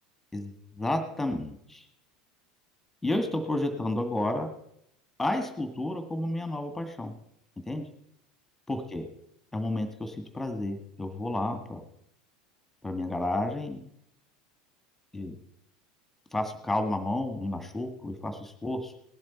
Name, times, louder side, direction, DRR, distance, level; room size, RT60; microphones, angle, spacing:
voice 1, 0.3-1.8 3.0-4.5 5.2-7.1 7.7-7.8 8.7-9.0 9.5-11.8 12.8-13.8 15.1-15.4 16.3-19.0, left 1 dB, 10° left, 6 dB, 1.9 m, -31 dB
18.5 x 12.0 x 4.4 m, 0.73 s
figure-of-eight pair, 75°, 3 cm